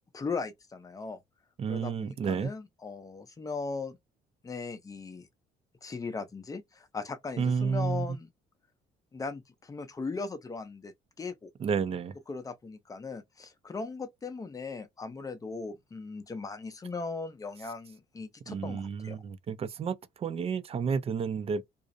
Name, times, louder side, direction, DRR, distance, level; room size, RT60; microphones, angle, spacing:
voice 1, 0.1-1.2 1.7-4.0 4.4-5.3 5.8-8.3 9.1-11.5 12.3-19.2, left 4 dB, 20° left, 0.6 m, -38 dB
voice 2, 1.6-2.5 7.4-8.1 11.6-12.2 18.5-21.6, right 6 dB, 35° right, 0.4 m, -31 dB
2.4 x 2.0 x 2.5 m
cardioid pair, 110°, 17 cm